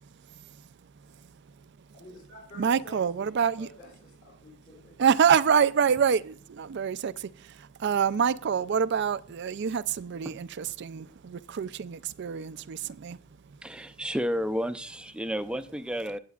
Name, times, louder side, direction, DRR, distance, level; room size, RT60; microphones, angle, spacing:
voice 1, 0.0-1.9 2.5-3.7 5.0-13.9, right 7 dB, 60° right, 0.4 m, -27 dB
voice 2, 1.9-4.9, left 1 dB, 60° left, 4.0 m, -50 dB
voice 3, 13.6-16.2, equal, 5° right, 0.5 m, -31 dB
17.5 x 8.0 x 2.4 m
head